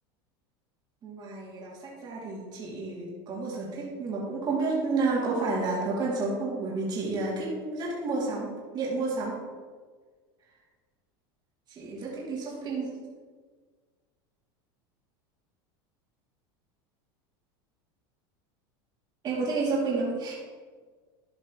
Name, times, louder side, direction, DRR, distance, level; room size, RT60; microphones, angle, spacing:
voice 1, 1.0-9.4 11.7-12.9 19.2-20.3, right 3 dB, 35° right, -5 dB, 2.5 m, -30 dB
12.0 x 5.2 x 3.0 m, 1.5 s
supercardioid pair, 115°, 12 cm